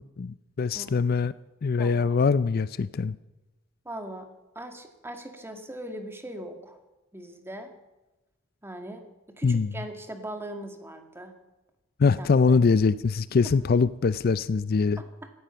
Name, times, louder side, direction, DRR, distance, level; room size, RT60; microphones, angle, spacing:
voice 1, 0.0-1.3 1.6-3.2 9.4-9.7 12.0-15.0, left 4 dB, 50° left, 16 dB, 0.4 m, -23 dB
voice 2, 1.8-2.2 3.9-4.3 4.6-6.8 7.1-7.7 8.6-9.0 9.4-11.3 12.2-12.3 15.0-15.1, right 1 dB, 10° right, 5 dB, 2.1 m, -39 dB
17.5 x 14.0 x 5.8 m, 1.0 s
head